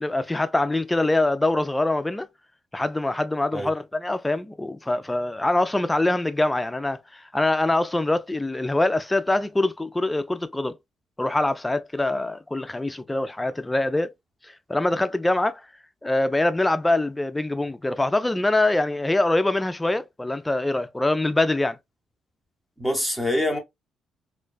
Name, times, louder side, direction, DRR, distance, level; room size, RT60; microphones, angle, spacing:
voice 1, 0.0-2.3 2.7-10.7 11.2-14.1 14.4-15.6 16.0-21.8, left 2 dB, 15° left, 0.3 m, -24 dB
voice 2, 22.8-23.6, left 1 dB, 5° right, 0.9 m, -25 dB
2.5 x 2.2 x 2.2 m
cardioid pair, 80°, 0 cm